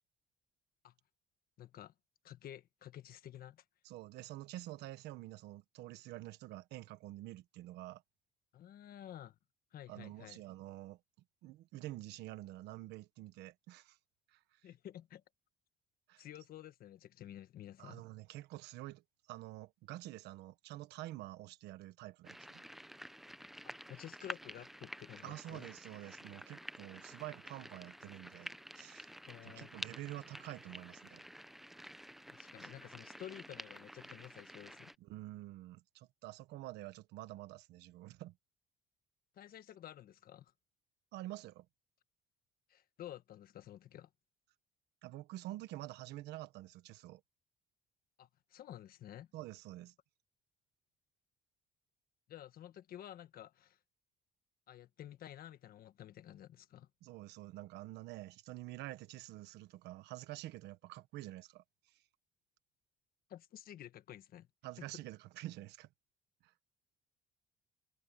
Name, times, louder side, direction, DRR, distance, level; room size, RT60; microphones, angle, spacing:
voice 1, 1.6-1.9 2.2-3.6 8.5-9.4 9.7-10.4 14.6-15.2 16.2-18.1 23.6-25.7 29.2-29.7 32.3-34.9 39.3-40.5 42.7-44.1 48.2-49.3 52.3-53.8 54.7-56.9 63.3-64.5 64.8-64.9, left 11 dB, 60° left, 1.5 m, -51 dB
voice 2, 3.8-8.0 9.9-11.0 11.4-14.0 14.3-14.4 16.1-16.2 17.8-19.0 19.3-22.6 25.2-29.1 29.4-31.2 35.0-38.3 41.1-41.7 45.0-47.2 49.3-49.9 57.0-61.6 64.6-65.9 66.4-66.5, right 16 dB, 85° right, 1.3 m, -48 dB
sound 1, 22.2-34.9, equal, ahead, 0.8 m, -50 dB
cardioid pair, 110°, 17 cm